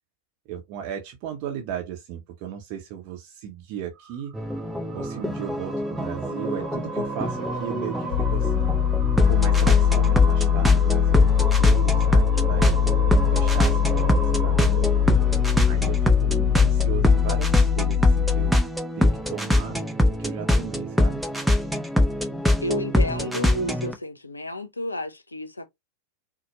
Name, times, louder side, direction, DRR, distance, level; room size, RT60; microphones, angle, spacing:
voice 1, 0.5-4.3 4.9-8.7 9.3-12.8 13.3-15.0 15.6-18.6 19.0-19.9 20.2-21.2, right 9 dB, 45° right, 0.7 m, -36 dB
sound 1, 3.9-16.4, right 4 dB, 25° right, 1.1 m, -37 dB
sound 2, 4.3-23.9, left 1 dB, ahead, 0.6 m, -24 dB
sound 3, 8.1-18.5, left 9 dB, 40° left, 1.0 m, -22 dB
voice 2, 22.6-25.7, left 1 dB, 80° left, 0.6 m, -31 dB
4.2 x 2.2 x 2.9 m
figure-of-eight pair, 90°, 0 cm